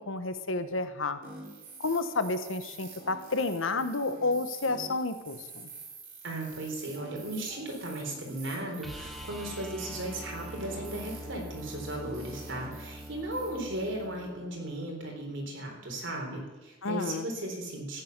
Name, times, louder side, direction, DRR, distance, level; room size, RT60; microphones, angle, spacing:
voice 1, 0.1-1.2 1.8-5.7 16.8-17.3, left 3 dB, 85° left, 10 dB, 1.1 m, -30 dB
sound 1, 1.2-14.3, right 3 dB, 45° right, 4.0 m, -48 dB
voice 2, 6.2-18.0, right 1 dB, 65° right, 1 dB, 3.9 m, -36 dB
sound 2, 8.8-14.8 17.3-17.4, equal, ahead, 1.9 m, -44 dB
14.0 x 10.5 x 6.7 m, 1.1 s
head